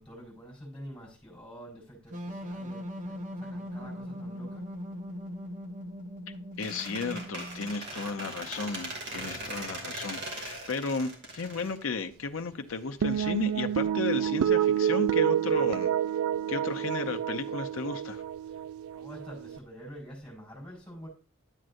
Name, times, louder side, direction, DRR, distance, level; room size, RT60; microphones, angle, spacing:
voice 1, 0.0-4.6 18.4-18.6 18.9-21.1, equal, 5° left, 4.3 m, -47 dB
sound 1, 2.1-7.7, equal, 40° right, 0.9 m, -40 dB
voice 2, 6.6-15.9 16.5-18.2, left 4 dB, 70° left, 0.7 m, -34 dB
Squeak, 6.6-12.4, right 2 dB, 55° right, 2.4 m, -40 dB
sound 2, 13.0-19.6, right 9 dB, 85° right, 0.3 m, -28 dB
10.5 x 7.6 x 2.6 m
head